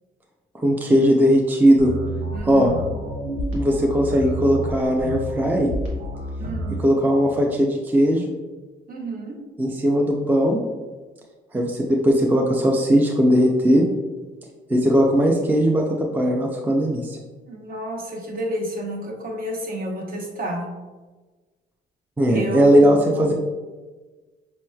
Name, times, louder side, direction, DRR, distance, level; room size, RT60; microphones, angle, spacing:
voice 1, 0.5-1.9 2.4-2.7 3.5-5.7 6.8-8.3 9.6-10.6 11.5-13.9 14.7-15.8 16.1-17.2 22.2-23.3, equal, 10° right, 0 dB, 0.4 m, -18 dB
sound 1, 1.8-6.8, equal, 85° right, 1.0 m, -29 dB
voice 2, 2.3-2.8 6.4-6.7 8.9-9.4 17.5-20.7 22.3-23.3, right 1 dB, 45° right, 0 dB, 0.9 m, -30 dB
5.3 x 3.0 x 2.2 m, 1.3 s
cardioid pair, 90°, 20 cm